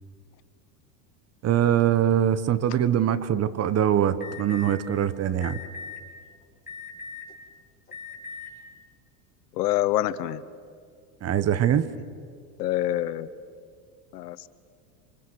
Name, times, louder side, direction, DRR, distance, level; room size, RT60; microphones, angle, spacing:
voice 1, 1.4-5.6 11.2-11.9, right 10 dB, 30° right, 14 dB, 1.2 m, -23 dB
Alarm, 4.2-4.7 5.4-6.0 6.7-7.3 7.9-8.5, left 5 dB, 20° left, 5.6 m, -39 dB
voice 2, 9.5-10.4 12.6-13.3 14.1-14.5, left 13 dB, 80° left, 14 dB, 1.2 m, -26 dB
27.5 x 26.5 x 6.5 m, 2.2 s
hypercardioid pair, 105°, 47 cm